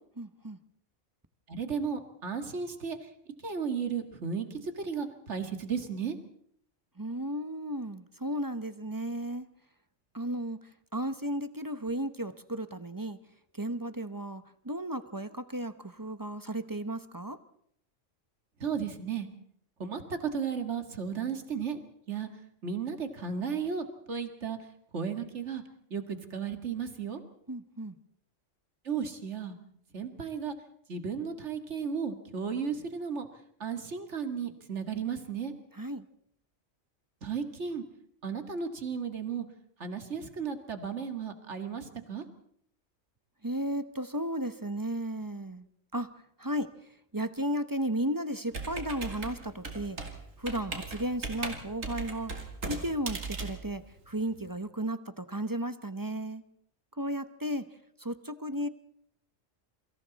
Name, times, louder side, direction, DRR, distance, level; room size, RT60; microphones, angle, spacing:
voice 1, 0.2-0.6 7.0-9.5 10.1-13.2 13.5-17.4 27.5-28.0 35.7-36.0 43.4-45.7 45.9-46.1 46.4-46.7 47.1-50.0 50.4-52.3 52.7-56.4 57.0-57.6 58.0-58.7, right 1 dB, 20° right, 11 dB, 0.9 m, -34 dB
voice 2, 1.5-3.1 3.4-6.2 18.6-19.3 19.8-21.8 22.1-22.3 22.6-24.6 24.9-25.6 25.9-27.2 28.9-29.6 29.9-30.5 30.9-33.3 33.6-35.5 37.2-37.8 38.2-39.5 39.8-42.2, right 6 dB, 65° right, 7 dB, 2.3 m, -34 dB
Computer keyboard, 48.5-54.5, right 3 dB, 85° right, 2.9 m, -38 dB
28.0 x 24.5 x 4.2 m, 0.66 s
omnidirectional pair, 1.3 m